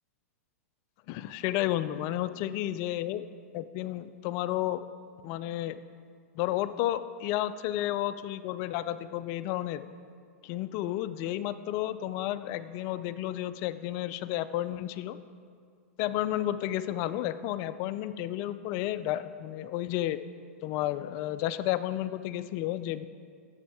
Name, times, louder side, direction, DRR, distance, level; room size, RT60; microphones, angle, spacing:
voice 1, 1.1-3.2 3.5-4.8 5.2-5.8 6.4-9.9 10.4-15.2 16.0-20.2 20.6-23.0, left 13 dB, 40° left, 12 dB, 0.3 m, -32 dB
9.5 x 7.3 x 4.7 m, 2.2 s
hypercardioid pair, 140°, 8 cm